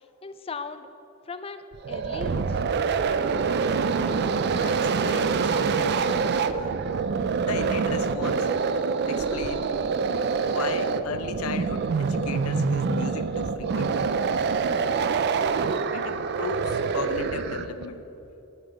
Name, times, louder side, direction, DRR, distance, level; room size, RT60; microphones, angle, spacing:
voice 1, 0.2-0.9 1.3-2.6, left 4 dB, 25° left, 11 dB, 0.4 m, -37 dB
sound 1, 1.7-17.8, right 5 dB, 50° right, 0.4 m, -25 dB
voice 2, 4.5-6.2 7.4-8.5 9.0-9.7 10.4-14.0 15.9-18.0, left 5 dB, 85° left, 12 dB, 0.5 m, -36 dB
9.3 x 5.4 x 7.9 m, 2.9 s
head